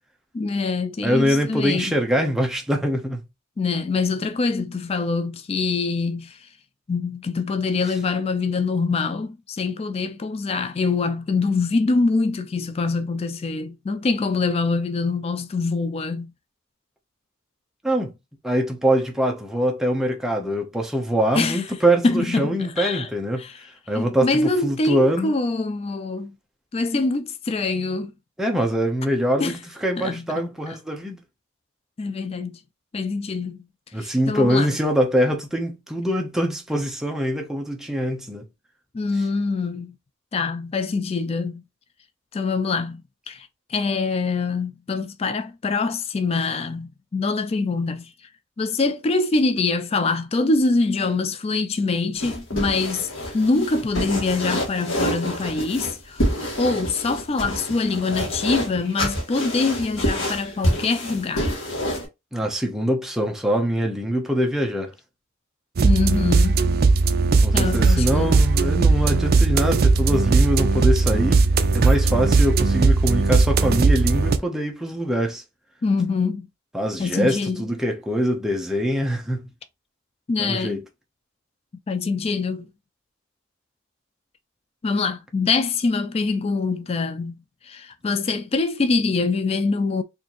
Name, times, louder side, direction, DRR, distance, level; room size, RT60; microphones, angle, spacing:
voice 1, 0.3-1.9 3.6-6.4 6.9-16.3 21.4-21.6 22.0-23.1 23.4-23.6 23.9-26.3 26.7-28.1 29.4-29.6 30.0-30.3 30.7-30.8 32.0-32.6 32.9-33.6 34.0-34.8 38.9-40.0 40.3-41.6 42.3-48.1 48.6-61.6 65.8-66.6 67.5-68.1 75.8-76.5 77.0-77.6 80.3-80.8 81.9-82.7 84.8-87.4 87.6-90.0, left 3 dB, 30° left, 0.3 m, -24 dB
voice 2, 1.0-3.2 17.8-18.1 18.4-23.4 23.9-25.3 28.4-31.2 33.9-38.5 62.3-64.9 67.4-71.4 71.7-75.4 76.7-79.4 80.4-80.8, equal, ahead, 0.8 m, -23 dB
sound 1, 52.1-62.0, equal, 70° left, 1.5 m, -27 dB
sound 2, 65.8-74.4, right 3 dB, 45° right, 0.4 m, -18 dB
4.2 x 2.7 x 2.9 m
head